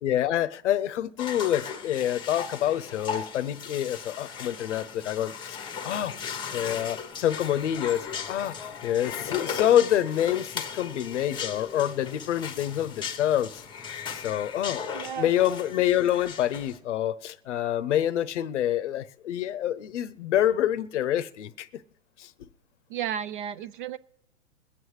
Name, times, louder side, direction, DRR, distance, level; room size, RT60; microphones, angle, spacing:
voice 1, 0.0-5.6 5.8-8.6 8.8-13.6 13.9-14.8 15.2-21.8 22.2-22.5, left 11 dB, 65° left, 0.7 m, -27 dB
sound 1, 1.2-16.8, left 6 dB, 10° left, 1.0 m, -37 dB
voice 2, 14.9-15.3 22.9-24.0, right 9 dB, 40° right, 0.4 m, -33 dB
22.5 x 7.9 x 3.2 m
hypercardioid pair, 125°, 39 cm